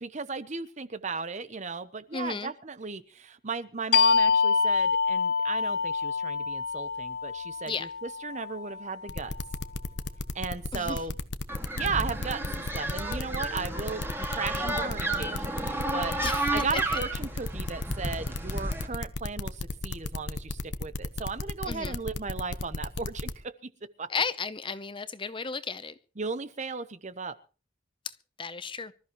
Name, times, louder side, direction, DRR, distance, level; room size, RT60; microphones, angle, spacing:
voice 1, 0.0-9.3 10.3-11.2 11.8-23.7 24.0-24.1 26.2-27.4, right 4 dB, 40° right, 1.0 m, -36 dB
voice 2, 2.1-2.5 7.7-7.8 10.7-11.0 16.2-16.4 21.7-21.9 24.1-25.9 28.4-28.9, left 5 dB, 30° left, 0.8 m, -33 dB
sound 1, 3.9-9.2, left 5 dB, 65° left, 0.6 m, -26 dB
sound 2, 9.1-23.3, left 2 dB, 85° left, 1.2 m, -33 dB
sound 3, 11.5-18.9, right 1 dB, 15° right, 2.3 m, -32 dB
25.0 x 13.5 x 3.1 m
head